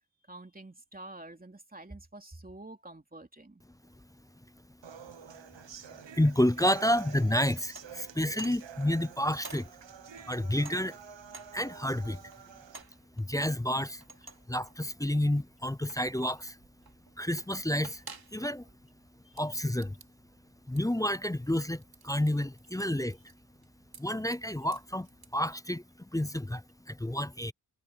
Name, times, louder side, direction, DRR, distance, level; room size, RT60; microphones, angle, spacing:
voice 1, 0.3-3.6 19.2-19.4, right 2 dB, 20° right, 3.2 m, -48 dB
sound 1, 4.8-12.8, right 7 dB, 75° right, 1.1 m, -48 dB
voice 2, 6.1-9.7 10.3-11.0 11.5-12.2 13.2-14.0 14.5-16.6 17.2-18.0 18.3-18.6 19.4-19.9 20.7-23.2 24.0-27.5, left 1 dB, 10° left, 0.5 m, -30 dB
sound 2, 6.9-25.4, right 3 dB, 55° right, 3.6 m, -54 dB
wide cardioid pair, 75°, 44 cm